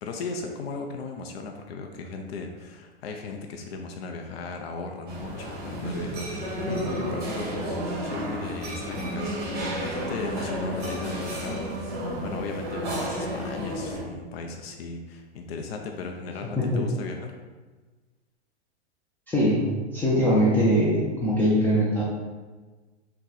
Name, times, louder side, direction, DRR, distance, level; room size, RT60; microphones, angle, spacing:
voice 1, 0.0-11.9 12.2-17.3, left 4 dB, 60° left, 3 dB, 0.5 m, -37 dB
sound 1, 5.1-14.0, equal, 30° right, 1.5 m, -31 dB
voice 2, 19.3-19.7 19.9-22.0, equal, 5° left, -8 dB, 0.4 m, -22 dB
3.7 x 2.2 x 4.0 m, 1.3 s
hypercardioid pair, 110°, 34 cm